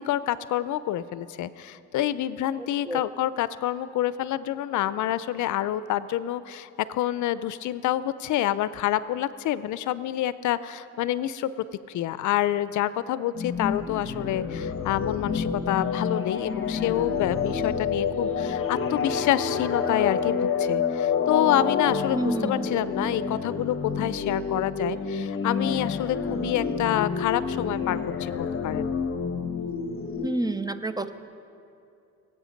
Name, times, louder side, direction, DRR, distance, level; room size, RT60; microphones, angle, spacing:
voice 1, 0.0-11.5 11.9-29.0, left 12 dB, 75° left, 15 dB, 0.5 m, -27 dB
sound 1, 13.3-30.3, left 6 dB, 45° left, 1.2 m, -28 dB
voice 2, 22.1-22.5 30.2-31.1, right 1 dB, 15° right, 11 dB, 0.6 m, -28 dB
23.0 x 8.4 x 5.2 m, 2.6 s
cardioid pair, 90°, 30 cm